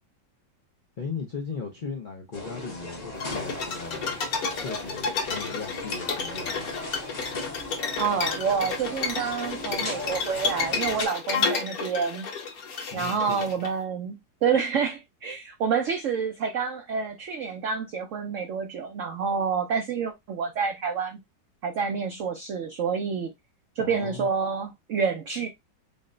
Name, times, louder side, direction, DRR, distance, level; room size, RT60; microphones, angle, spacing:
voice 1, 1.0-6.7 12.9-13.4 23.8-24.3, left 5 dB, 80° left, 0.4 m, -37 dB
sound 1, 2.3-11.1, left 2 dB, 40° left, 0.6 m, -37 dB
sound 2, 3.2-13.7, left 5 dB, 60° left, 1.2 m, -31 dB
voice 2, 8.0-12.3 12.9-21.2 21.6-23.3 23.8-25.5, right 6 dB, 80° right, 0.6 m, -28 dB
3.8 x 2.1 x 3.8 m
omnidirectional pair, 2.0 m